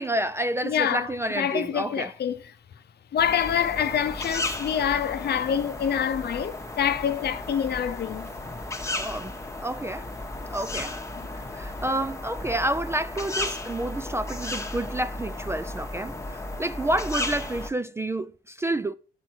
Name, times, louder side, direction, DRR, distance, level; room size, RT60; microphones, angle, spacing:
voice 1, 0.0-2.1 9.0-9.3 9.6-10.1 10.5-10.9 11.5-18.9, right 1 dB, 15° right, 0.3 m, -29 dB
voice 2, 0.6-1.1 1.4-2.4 3.1-8.3 11.2-11.3, left 8 dB, 55° left, 0.7 m, -26 dB
sound 1, 3.2-17.7, left 2 dB, 15° left, 1.1 m, -34 dB
7.6 x 4.9 x 4.4 m
cardioid pair, 90°, 20 cm